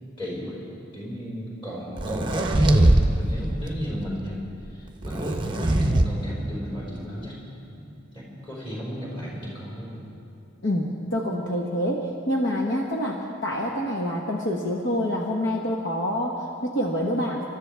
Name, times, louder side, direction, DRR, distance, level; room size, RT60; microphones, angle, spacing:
voice 1, 0.2-0.5 0.9-4.4 4.7-7.3 8.1-10.1, equal, 25° left, -7 dB, 5.1 m, -34 dB
sound 1, 2.0-3.1 3.4-3.8 5.0-6.1, right 1 dB, 25° right, 0.7 m, -20 dB
voice 2, 10.6-17.4, equal, 60° left, -1 dB, 1.3 m, -27 dB
29.0 x 13.5 x 3.5 m, 2.6 s
head